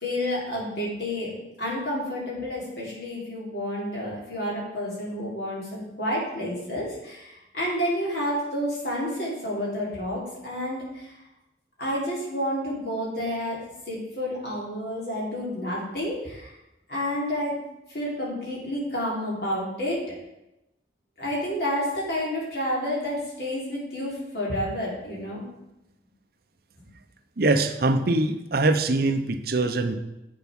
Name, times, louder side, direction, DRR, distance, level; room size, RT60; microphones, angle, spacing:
voice 1, 0.0-1.3 1.6-11.2 11.8-13.6 13.9-16.5 16.9-17.6 17.9-20.2 21.2-25.4, equal, 60° left, -5 dB, 3.6 m, -30 dB
voice 2, 27.4-30.0, right 2 dB, 55° right, 7 dB, 0.7 m, -23 dB
8.1 x 6.8 x 5.3 m, 0.92 s
head